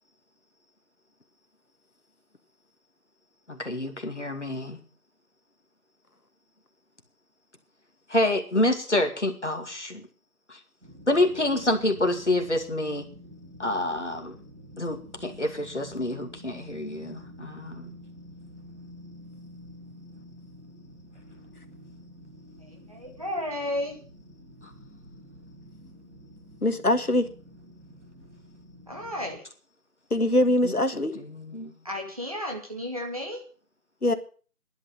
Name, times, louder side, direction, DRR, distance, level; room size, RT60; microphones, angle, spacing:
voice 1, 3.5-4.8 8.1-10.1 10.5-10.6 11.1-13.1 13.6-14.4 14.8-17.9 24.6-24.7 30.6-30.7 31.2-31.7, left 1 dB, 50° left, 6 dB, 2.4 m, -27 dB
sound 1, 10.8-29.4, equal, 50° right, 6.2 m, -48 dB
voice 2, 22.9-24.0 28.9-29.4 31.8-33.4, left 1 dB, 25° right, 0 dB, 2.2 m, -33 dB
voice 3, 26.6-27.3 30.1-31.2 34.0-34.1, left 1 dB, 75° left, 9 dB, 1.7 m, -22 dB
12.0 x 11.0 x 7.6 m, 0.41 s
figure-of-eight pair, 170°, 44 cm